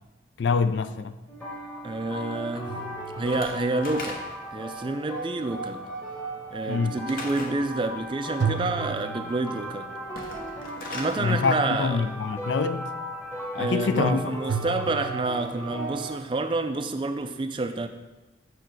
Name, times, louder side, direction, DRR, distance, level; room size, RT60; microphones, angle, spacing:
voice 1, 0.4-1.2 6.7-7.0 11.2-12.9 13.5-14.2, left 5 dB, 75° left, 0.4 m, -25 dB
sound 1, 1.3-16.2, equal, 10° left, 1.1 m, -37 dB
voice 2, 1.8-2.8 3.2-4.2 4.5-5.8 6.5-9.9 10.9-12.1 13.6-17.9, right 2 dB, 25° right, 0.3 m, -28 dB
sound 2, 2.7-3.8 8.4-10.0 14.5-15.6, right 6 dB, 90° right, 0.5 m, -33 dB
Slam / Wood, 3.3-4.6 7.1-7.6 10.0-11.2, left 2 dB, 50° left, 0.9 m, -38 dB
6.4 x 4.7 x 4.6 m
head